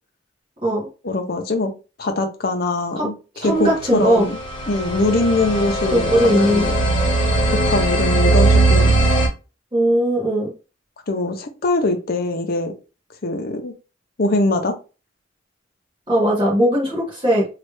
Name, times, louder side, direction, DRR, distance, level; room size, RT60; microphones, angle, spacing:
voice 1, 1.0-1.7 2.0-3.1 3.4-4.4 4.7-6.8 7.5-8.9 11.1-12.7 13.2-13.7 14.2-14.7, left 2 dB, 50° left, 5 dB, 0.6 m, -22 dB
voice 2, 3.3-4.3 5.9-6.7 9.7-10.5 16.1-17.5, right 1 dB, 25° right, -5 dB, 1.2 m, -18 dB
sound 1, 3.9-9.3, right 2 dB, 25° left, 1.0 m, -19 dB
3.1 x 2.4 x 3.2 m, 0.32 s
head